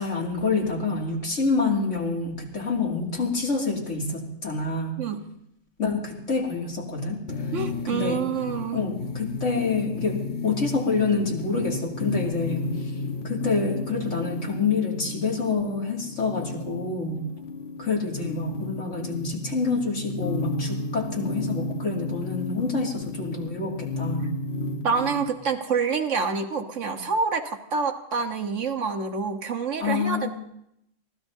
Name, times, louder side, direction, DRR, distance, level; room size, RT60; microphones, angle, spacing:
voice 1, 0.0-5.0 5.8-7.5 7.9-8.2 8.7-12.9 13.2-17.2 17.8-24.3 29.8-30.3, left 4 dB, 85° left, -1 dB, 2.8 m, -27 dB
sound 1, 7.3-25.3, left 3 dB, 65° left, 1.5 m, -33 dB
voice 2, 7.5-8.8 24.8-30.3, right 5 dB, 85° right, 5 dB, 1.6 m, -27 dB
24.5 x 16.5 x 2.7 m, 0.77 s
omnidirectional pair, 1.2 m